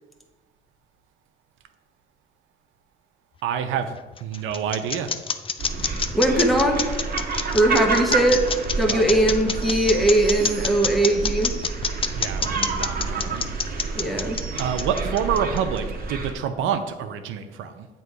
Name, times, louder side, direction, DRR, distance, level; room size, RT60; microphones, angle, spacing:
voice 1, 3.4-5.1 8.9-9.2 12.1-13.5 14.6-17.9, right 8 dB, 90° right, 8 dB, 0.6 m, -28 dB
sound 1, 3.8-15.8, left 6 dB, 30° left, 0.4 m, -27 dB
sound 2, 5.6-16.3, right 4 dB, 50° right, 1.0 m, -29 dB
voice 2, 6.1-6.9 7.5-8.5 8.8-11.5 13.9-14.4, right 1 dB, ahead, 3 dB, 0.8 m, -20 dB
7.8 x 3.0 x 4.7 m, 1.2 s
cardioid pair, 90°, 20 cm